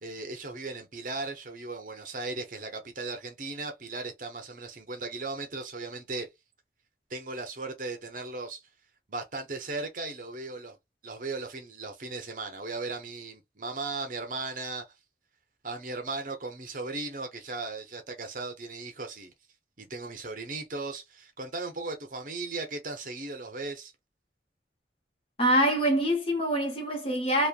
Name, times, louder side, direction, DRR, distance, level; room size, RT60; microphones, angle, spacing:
voice 1, 0.0-6.3 7.1-8.6 9.1-10.8 11.0-14.9 15.6-19.3 19.8-23.9, right 3 dB, 50° right, 0.8 m, -37 dB
voice 2, 25.4-27.5, equal, 30° left, 0.8 m, -25 dB
3.1 x 2.2 x 2.4 m
head